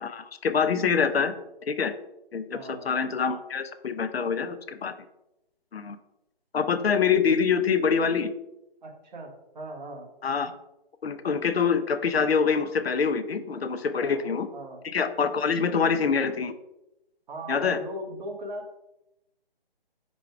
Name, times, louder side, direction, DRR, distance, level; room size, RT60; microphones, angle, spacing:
voice 1, 0.0-1.3 1.7-1.9 2.3-2.6 2.8-4.9 5.7-6.0 6.5-8.3 10.2-10.5 11.0-14.5 14.8-16.5 17.5-17.8, left 6 dB, 85° left, 10 dB, 0.6 m, -25 dB
voice 2, 2.5-2.9 8.8-10.1 13.9-14.3 14.5-14.8 17.3-18.8, right 1 dB, 50° right, 1 dB, 1.2 m, -39 dB
5.0 x 2.3 x 4.6 m, 0.88 s
figure-of-eight pair, 145°, 30 cm